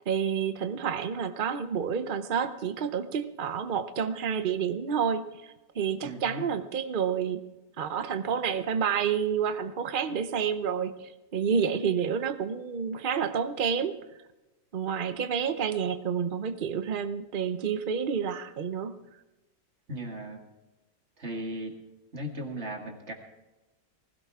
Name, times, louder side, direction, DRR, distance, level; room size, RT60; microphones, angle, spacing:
voice 1, 0.1-7.5 7.8-14.0 14.7-19.0, right 7 dB, 60° right, 10 dB, 0.5 m, -29 dB
voice 2, 6.0-6.5 19.9-20.4 21.2-21.7 22.1-23.1, equal, 40° right, 2 dB, 2.4 m, -37 dB
20.0 x 16.0 x 3.6 m, 1.0 s
omnidirectional pair, 1.9 m